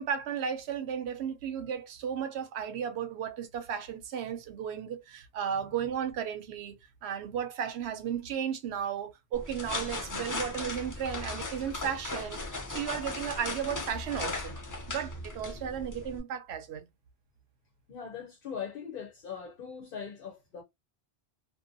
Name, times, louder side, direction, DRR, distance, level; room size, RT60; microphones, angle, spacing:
voice 1, 0.0-12.4 12.7-14.6 14.9-16.8, right 8 dB, 90° right, 0.9 m, -34 dB
sound 1, 9.3-16.2, left 2 dB, 30° left, 0.3 m, -37 dB
voice 2, 17.9-20.6, left 7 dB, 60° left, 0.8 m, -40 dB
2.7 x 2.1 x 2.5 m
omnidirectional pair, 1.1 m